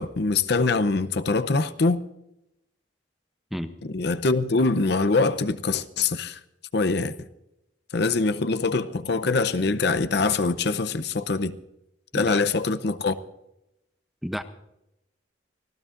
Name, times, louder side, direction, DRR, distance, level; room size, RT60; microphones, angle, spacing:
voice 1, 0.0-2.0 3.8-6.4 6.7-7.1 7.9-11.6 12.1-13.2, left 3 dB, 55° left, 0.6 m, -24 dB
voice 2, 12.1-12.5 14.2-14.4, equal, ahead, 0.6 m, -31 dB
25.0 x 15.5 x 2.5 m
head